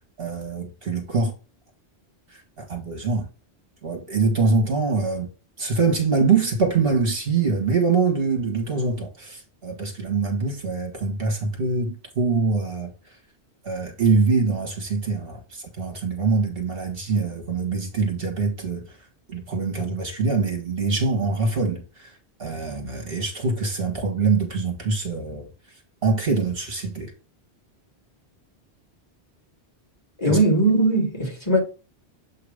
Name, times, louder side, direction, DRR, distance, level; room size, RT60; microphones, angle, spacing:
voice 1, 0.2-1.3 2.6-3.3 3.8-5.3 5.6-12.9 13.6-19.0 19.3-22.1 22.4-25.5 26.0-27.1 30.3-30.4, right 4 dB, 60° right, 1.7 m, -24 dB
voice 2, 30.2-31.6, right 2 dB, 25° left, 2.2 m, -19 dB
7.6 x 2.9 x 4.9 m
omnidirectional pair, 1.1 m